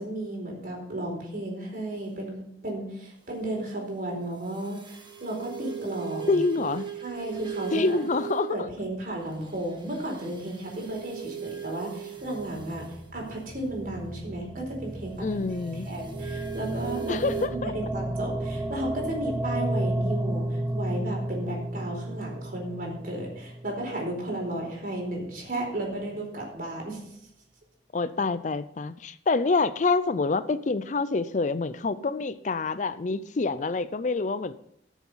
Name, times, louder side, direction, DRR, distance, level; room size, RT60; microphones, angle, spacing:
voice 1, 0.0-2.4 2.6-6.4 7.0-8.0 8.5-12.9 13.1-15.4 15.7-17.2 17.5-27.0, right 1 dB, 50° right, -1 dB, 4.6 m, -34 dB
sound 1, 4.5-8.7 9.3-13.0 15.5-17.5, right 9 dB, 25° right, 1.4 m, -38 dB
voice 2, 6.3-6.9 7.7-8.6 15.2-15.9 17.1-17.7 27.9-34.5, left 3 dB, 45° left, 14 dB, 0.5 m, -26 dB
sound 2, 12.2-24.4, right 1 dB, 10° right, 0.8 m, -33 dB
13.5 x 7.1 x 5.6 m, 0.71 s
head